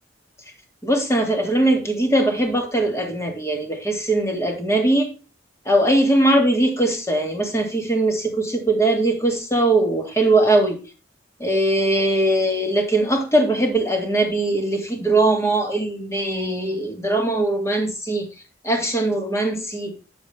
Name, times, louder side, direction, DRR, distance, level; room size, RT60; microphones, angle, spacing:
voice 1, 0.8-5.1 5.7-10.8 11.4-18.3 18.6-20.0, right 1 dB, 15° left, 2 dB, 2.0 m, -20 dB
8.6 x 7.1 x 3.3 m, 0.33 s
head